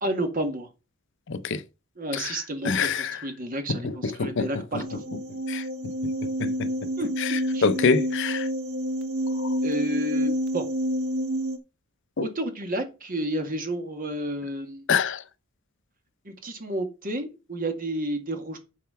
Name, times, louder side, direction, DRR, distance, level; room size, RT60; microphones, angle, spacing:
voice 1, 0.0-0.7 2.0-5.0 7.0-7.1 7.5-7.7 9.6-10.7 12.2-14.8 16.3-18.6, right 1 dB, 45° right, 2.0 m, -31 dB
voice 2, 1.3-1.6 2.1-3.2 3.7-3.9 4.2-4.5 4.7-4.8 5.5-5.6 6.4-6.7 7.2-8.5 9.4-9.5 12.2-12.3 14.9-15.2, left 5 dB, 60° left, 0.7 m, -26 dB
sound 1, 4.8-11.6, equal, 85° right, 1.5 m, -28 dB
8.9 x 4.7 x 5.8 m
head